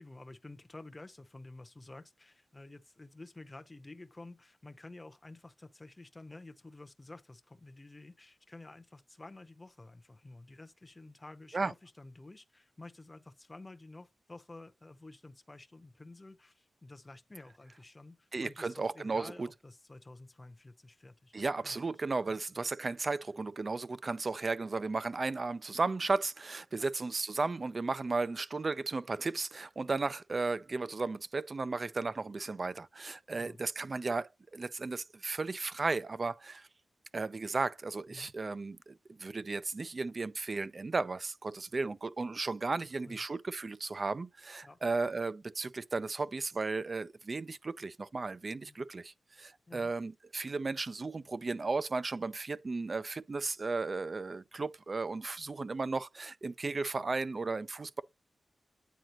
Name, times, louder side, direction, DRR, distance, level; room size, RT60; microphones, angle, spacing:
voice 1, 0.0-21.8 22.3-22.4 26.7-26.9 33.3-33.6 38.1-38.3 43.0-43.2 44.6-44.8 48.7-48.8 49.7-49.9, left 2 dB, 25° left, 0.8 m, -51 dB
voice 2, 18.3-19.5 21.3-36.7 37.1-58.0, right 3 dB, 45° right, 0.4 m, -35 dB
9.3 x 3.8 x 3.0 m
cardioid pair, 65°, 0 cm